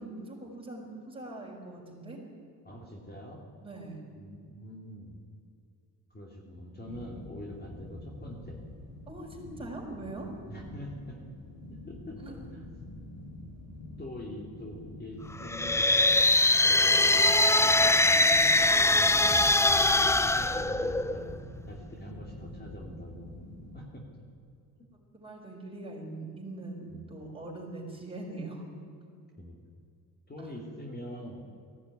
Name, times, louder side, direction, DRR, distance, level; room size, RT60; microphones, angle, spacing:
voice 1, 0.0-2.2 3.6-4.0 6.8-7.0 9.1-10.3 12.2-12.4 25.1-28.7 30.4-30.6, right 2 dB, 15° right, -1 dB, 5.4 m, -42 dB
voice 2, 2.6-3.4 4.2-5.2 6.1-8.6 10.5-11.2 11.9-12.7 14.0-16.1 16.7-18.3 18.7-19.4 20.0-23.3 23.7-24.0 26.9-27.1 29.4-29.6 30.3-31.4, equal, 25° left, -1 dB, 2.8 m, -44 dB
sound 1, 6.8-23.9, left 2 dB, 40° left, 4.7 m, -46 dB
sound 2, 15.4-21.3, left 2 dB, 5° left, 0.4 m, -22 dB
sound 3, 19.3-22.9, right 4 dB, 30° right, 4.6 m, -44 dB
18.5 x 15.5 x 9.8 m, 2.4 s
cardioid pair, 110°, 39 cm